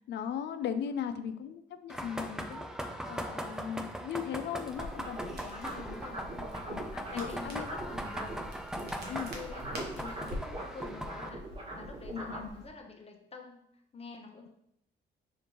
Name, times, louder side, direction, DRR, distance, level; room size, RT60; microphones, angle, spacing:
voice 1, 0.1-2.7 3.0-6.0 6.6-7.7 9.1-9.3 12.1-12.5, left 8 dB, 60° left, 10 dB, 0.4 m, -38 dB
sound 1, 1.9-11.3, right 1 dB, 5° right, 0.4 m, -40 dB
Crackle, 4.7-12.7, right 1 dB, 55° right, 1.0 m, -47 dB
sound 2, 4.8-8.5 8.7-12.5, right 1 dB, 30° right, 1.2 m, -41 dB
voice 2, 5.6-6.6 7.1-11.5 11.7-14.5, left 4 dB, 30° left, 3 dB, 0.7 m, -48 dB
5.0 x 2.5 x 3.0 m, 0.75 s
cardioid pair, 90°, 20 cm